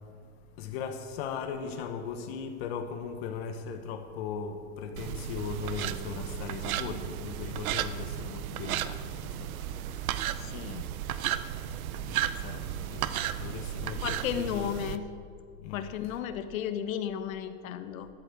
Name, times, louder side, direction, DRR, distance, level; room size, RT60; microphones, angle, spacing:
voice 1, 0.6-10.8 11.3-14.7 15.6-16.2, left 6 dB, 50° left, 1.1 m, -39 dB
sound 1, 5.0-15.0, right 11 dB, 85° right, 0.7 m, -34 dB
voice 2, 10.4-10.9 14.0-15.1 15.7-18.1, left 9 dB, 75° left, 1.1 m, -34 dB
12.5 x 8.4 x 7.3 m
supercardioid pair, 160°, 41 cm